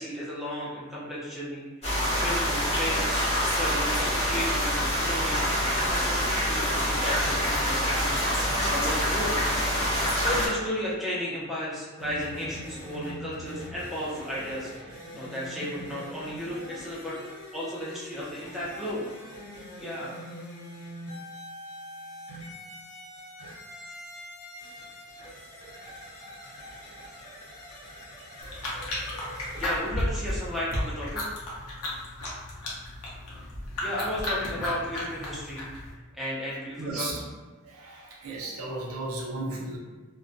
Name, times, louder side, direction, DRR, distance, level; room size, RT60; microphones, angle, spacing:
voice 1, 0.0-1.7 2.2-6.2 6.5-9.4 10.2-19.0 19.8-20.1 29.6-31.3 33.8-35.7 36.1-37.1, equal, ahead, -8 dB, 0.6 m, -34 dB
sound 1, 1.8-10.5, equal, 30° left, 0.8 m, -26 dB
sound 2, 12.0-29.8, equal, 70° left, 1.1 m, -43 dB
sound 3, 28.4-35.9, left 1 dB, 85° left, 0.7 m, -33 dB
voice 2, 36.5-37.2 37.6-39.8, right 2 dB, 70° right, -2 dB, 0.6 m, -35 dB
2.2 x 2.2 x 2.5 m, 1.3 s
head